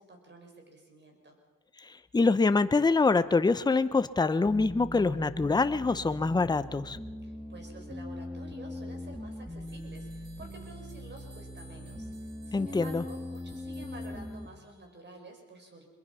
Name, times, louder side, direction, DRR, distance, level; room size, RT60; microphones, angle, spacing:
voice 1, 0.0-1.4 7.2-12.1 12.5-15.9, right 2 dB, 35° right, 3 dB, 6.0 m, -50 dB
voice 2, 2.1-7.0 12.5-13.0, left 3 dB, 15° left, 13 dB, 0.8 m, -25 dB
sound 1, 4.5-14.5, left 1 dB, ahead, 2.8 m, -41 dB
sound 2, 9.7-14.9, right 3 dB, 55° right, 5.4 m, -58 dB
24.0 x 21.5 x 5.6 m, 1.2 s
cardioid pair, 90°, 30 cm